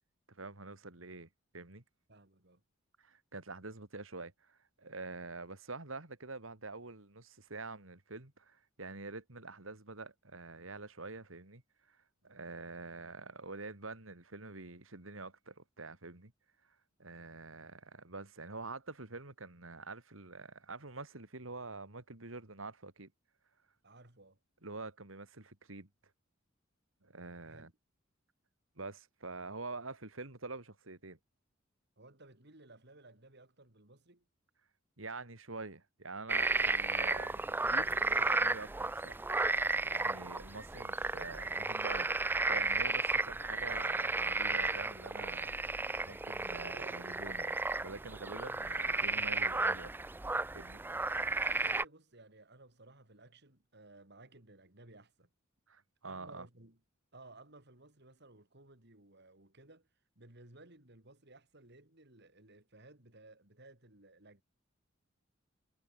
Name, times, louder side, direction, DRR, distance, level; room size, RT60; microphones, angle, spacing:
voice 1, 0.3-1.3 1.5-1.8 3.0-11.6 11.9-16.3 17.0-23.1 24.6-25.9 27.0-27.7 28.8-31.2 35.0-39.2 39.9-45.5 46.0-49.9 50.5-50.8 55.7-56.5, right 3 dB, 75° right, 2.8 m, -46 dB
voice 2, 2.1-2.6 23.8-24.4 27.4-27.7 32.0-34.3 51.5-55.3 56.1-56.8 57.1-59.9 60.2-64.4, right 2 dB, 55° right, 4.0 m, -58 dB
sound 1, 36.3-51.8, right 3 dB, 10° right, 0.3 m, -33 dB
head